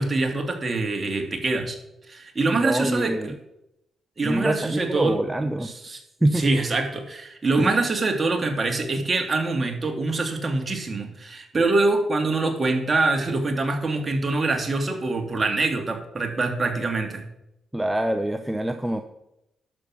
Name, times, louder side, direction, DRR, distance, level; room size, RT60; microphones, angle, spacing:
voice 1, 0.0-1.8 2.1-3.3 4.2-5.2 5.6-6.0 6.3-17.3, right 3 dB, 35° right, 4 dB, 2.4 m, -24 dB
voice 2, 2.5-3.3 4.2-5.7 6.2-6.5 7.6-7.7 17.7-19.0, right 1 dB, 10° right, 7 dB, 0.9 m, -25 dB
11.0 x 7.2 x 6.2 m, 0.86 s
supercardioid pair, 60°, 0 cm